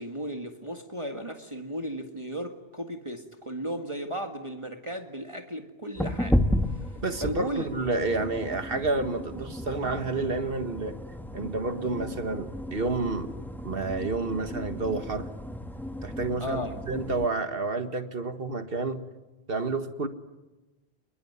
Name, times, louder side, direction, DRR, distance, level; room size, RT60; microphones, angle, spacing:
voice 1, 0.0-6.4 6.7-7.7 16.4-16.8, right 1 dB, 30° right, 4 dB, 1.8 m, -35 dB
sound 1, 6.0-17.3, left 1 dB, ahead, 1.3 m, -33 dB
voice 2, 7.0-11.0 11.3-13.3 13.6-15.3 16.0-19.1 19.5-20.1, right 3 dB, 60° right, 8 dB, 1.9 m, -30 dB
26.5 x 22.0 x 9.6 m, 1.1 s
omnidirectional pair, 1.1 m